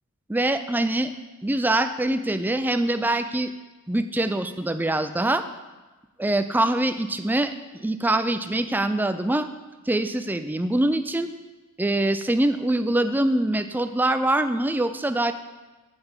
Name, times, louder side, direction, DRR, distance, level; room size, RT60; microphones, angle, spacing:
voice 1, 0.3-1.1 1.4-3.5 3.9-5.4 6.2-9.5 9.9-11.3 11.8-15.3, right 1 dB, 10° right, 10 dB, 0.3 m, -24 dB
8.0 x 5.1 x 7.2 m, 1.2 s
head